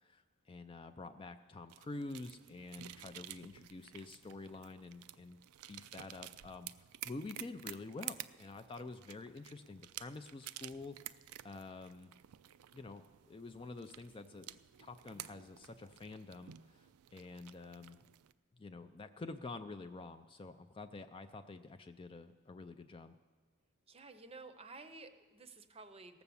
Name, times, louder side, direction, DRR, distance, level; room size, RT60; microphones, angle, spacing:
voice 1, 0.0-5.4 5.7-6.7 7.0-12.1 12.7-18.0 18.5-23.1, left 3 dB, 25° left, 8 dB, 0.3 m, -48 dB
sound 1, 1.7-18.3, right 13 dB, 80° right, 0.4 m, -52 dB
voice 2, 23.9-26.2, right 3 dB, 25° right, 9 dB, 0.7 m, -53 dB
17.5 x 7.0 x 7.0 m, 1.3 s
head